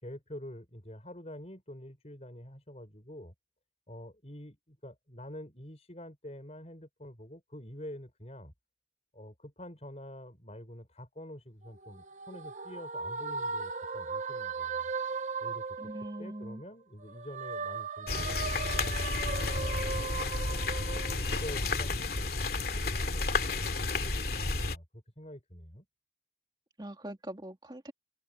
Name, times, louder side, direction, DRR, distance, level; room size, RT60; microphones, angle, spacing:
voice 1, 0.0-3.3 3.9-8.5 9.1-14.8 15.4-18.9 19.4-20.6 21.1-25.9, equal, 35° left, 5.7 m, -47 dB
sound 1, 11.6-16.6 17.0-21.8, right 4 dB, 40° right, 0.6 m, -38 dB
voice 2, 15.8-16.6 26.8-27.9, right 1 dB, 25° right, 2.3 m, -42 dB
sound 2, 18.1-24.8, left 3 dB, 55° left, 2.7 m, -31 dB
head